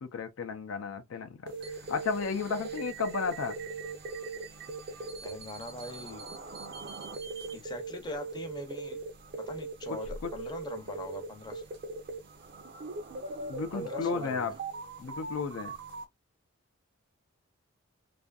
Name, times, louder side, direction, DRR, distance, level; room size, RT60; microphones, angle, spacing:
voice 1, 0.0-1.5 1.9-3.6 9.9-10.0 10.2-10.3 13.5-14.5 15.0-15.7, left 5 dB, 75° left, 0.4 m, -33 dB
sound 1, 1.5-16.0, right 3 dB, 50° right, 0.5 m, -40 dB
voice 2, 5.2-6.3 7.5-9.0 9.5-11.6 13.7-14.5, left 2 dB, 20° left, 0.6 m, -42 dB
2.5 x 2.4 x 2.3 m
head